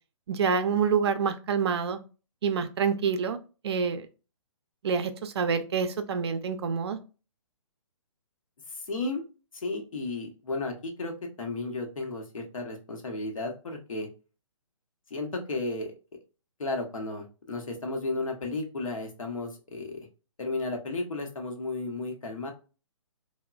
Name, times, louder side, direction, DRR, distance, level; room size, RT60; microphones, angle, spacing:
voice 1, 0.3-2.0 2.4-3.4 3.6-4.1 4.8-7.0, right 6 dB, 50° right, 9 dB, 0.4 m, -27 dB
voice 2, 8.7-9.2 9.5-11.1 11.4-14.1 15.1-15.9 16.6-20.0 20.4-22.5, left 2 dB, 75° left, 3 dB, 0.9 m, -33 dB
3.0 x 2.1 x 2.3 m, 0.33 s
hypercardioid pair, 140°, 17 cm